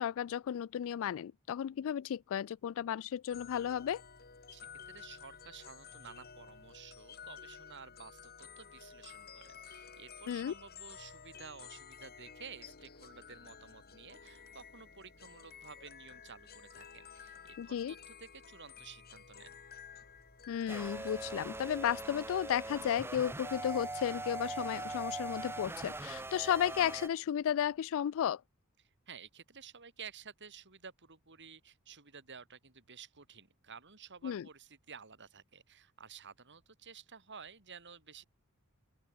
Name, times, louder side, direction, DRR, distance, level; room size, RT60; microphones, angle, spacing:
voice 1, 0.0-4.0 10.3-10.5 17.6-17.9 20.5-28.4 34.2-34.5, left 9 dB, 65° left, 0.3 m, -34 dB
sound 1, 3.3-21.8, left 6 dB, 45° left, 4.2 m, -53 dB
voice 2, 4.5-19.5 28.8-38.2, right 6 dB, 55° right, 4.5 m, -53 dB
sound 2, 20.7-27.1, right 2 dB, 10° right, 0.7 m, -41 dB
open air
head